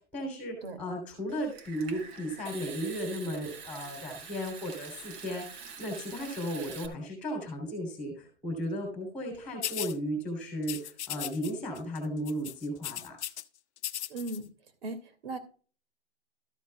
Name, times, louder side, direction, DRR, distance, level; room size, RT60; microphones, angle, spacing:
voice 1, 0.1-13.2, equal, 5° left, 1 dB, 3.1 m, -35 dB
Water tap faucet / Sink (filling or washing) / Trickle dribble, 1.3-6.9, right 5 dB, 20° right, 0.7 m, -45 dB
sound 1, 9.6-10.0 10.6-11.5 11.8-12.0 12.3-13.4 13.8-14.4, left 11 dB, 75° left, 0.8 m, -37 dB
voice 2, 14.1-14.5 14.8-15.4, right 2 dB, 55° right, 10 dB, 2.5 m, -37 dB
13.0 x 9.3 x 2.3 m, 0.38 s
hypercardioid pair, 155°, 34 cm